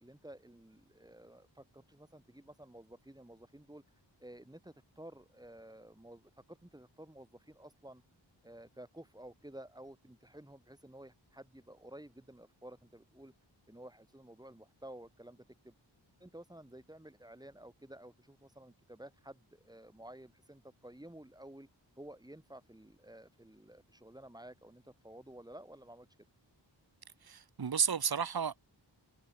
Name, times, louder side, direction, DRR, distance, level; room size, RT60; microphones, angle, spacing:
voice 1, 0.0-3.8 4.2-8.0 8.4-13.3 13.7-15.7 16.2-21.7 22.0-26.1, right 1 dB, 10° right, 1.7 m, -53 dB
voice 2, 27.2-28.6, right 7 dB, 55° right, 1.1 m, -32 dB
wide cardioid pair, 70°, 45 cm